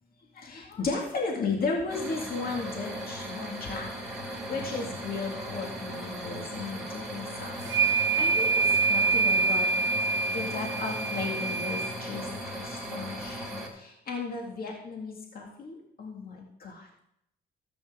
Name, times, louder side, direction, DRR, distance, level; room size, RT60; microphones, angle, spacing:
voice 1, 0.3-4.0 4.3-7.6 7.8-9.7 10.3-12.3 12.6-17.0, left 4 dB, 50° left, 0 dB, 2.1 m, -35 dB
sound 1, 1.9-13.7, equal, ahead, 3.5 m, -38 dB
sound 2, 7.6-11.9, right 4 dB, 70° right, 1.1 m, -26 dB
13.0 x 8.5 x 3.7 m, 0.76 s
cardioid pair, 90°, 19 cm